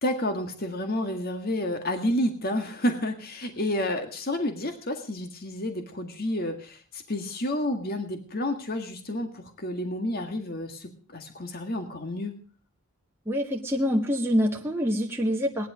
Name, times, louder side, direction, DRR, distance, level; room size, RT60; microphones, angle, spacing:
voice 1, 0.0-12.3, left 1 dB, 45° left, 6 dB, 1.8 m, -30 dB
voice 2, 13.3-15.7, equal, 10° right, -1 dB, 1.6 m, -25 dB
18.5 x 11.5 x 4.9 m, 0.41 s
head